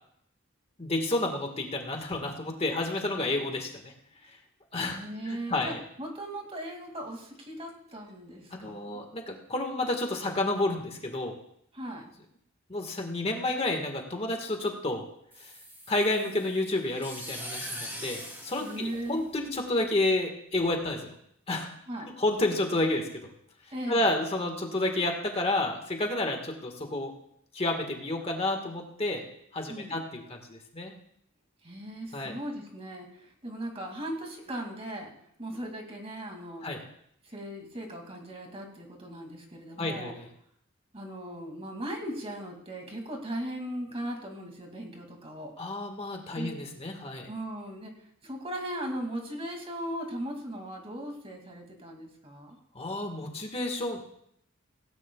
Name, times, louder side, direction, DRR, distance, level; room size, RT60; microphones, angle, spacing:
voice 1, 0.8-3.9 4.7-5.8 8.5-11.3 12.7-15.1 15.4-15.5 15.9-21.1 21.5-21.7 22.0-23.3 23.9-27.1 27.5-29.2 29.5-30.9 32.1-32.3 36.6-36.8 39.8-40.2 45.6-47.3 52.7-54.0, left 2 dB, 30° left, 3 dB, 1.6 m, -30 dB
voice 2, 4.8-9.0 11.7-12.1 18.6-19.3 21.9-22.1 23.7-24.1 29.7-30.0 31.6-35.1 35.4-36.7 37.3-40.1 40.9-45.5 46.4-46.5 47.3-47.9 48.2-52.6, right 1 dB, 30° right, 2 dB, 2.4 m, -38 dB
sound 1, 15.3-19.7, equal, 10° right, 3.7 m, -42 dB
17.0 x 17.0 x 2.3 m, 0.71 s
head